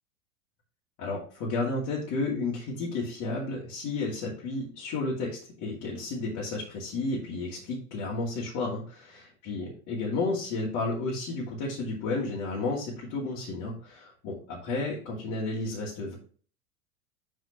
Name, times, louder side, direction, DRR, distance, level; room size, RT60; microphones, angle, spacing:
voice 1, 1.0-16.1, left 3 dB, 45° left, -5 dB, 2.5 m, -32 dB
6.9 x 6.5 x 3.0 m, 0.42 s
figure-of-eight pair, 85°, 42 cm